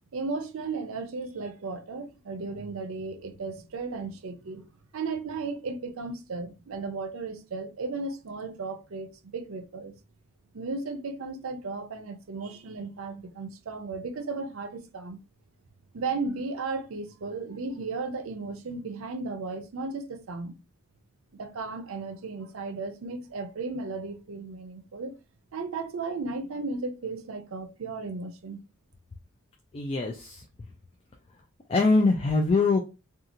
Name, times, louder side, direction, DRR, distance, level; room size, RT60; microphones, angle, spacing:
voice 1, 0.1-4.6 4.9-9.9 10.5-15.2 15.9-20.5 21.3-25.1 25.5-28.6, right 3 dB, 80° right, 0.5 m, -35 dB
voice 2, 29.7-30.4 31.7-32.8, left 3 dB, 25° left, 0.3 m, -23 dB
2.6 x 2.3 x 2.8 m
head